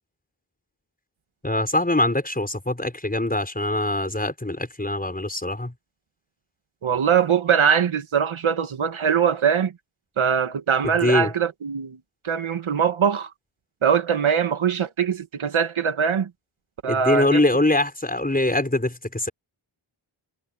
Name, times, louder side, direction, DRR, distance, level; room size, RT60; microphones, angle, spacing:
voice 1, 1.4-5.7 10.8-11.3 16.9-19.3, left 1 dB, 15° left, 5.5 m, -23 dB
voice 2, 6.8-9.7 10.2-12.0 12.2-13.3 13.8-16.3 16.8-17.4, right 7 dB, 70° right, 1.7 m, -22 dB
cardioid pair, 65°, 50 cm